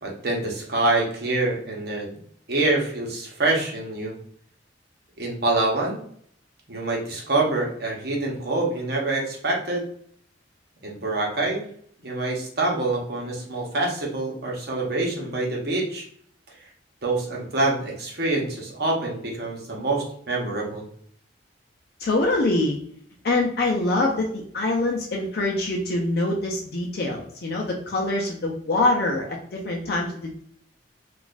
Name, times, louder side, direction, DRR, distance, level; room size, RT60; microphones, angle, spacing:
voice 1, 0.0-2.1 2.5-4.1 5.2-6.0 6.7-9.9 10.8-11.6 12.0-16.0 17.0-20.8, right 2 dB, 60° right, -1 dB, 0.9 m, -26 dB
voice 2, 22.0-22.8 23.2-30.4, left 2 dB, 55° left, -1 dB, 0.5 m, -24 dB
4.0 x 2.4 x 2.4 m, 0.62 s
head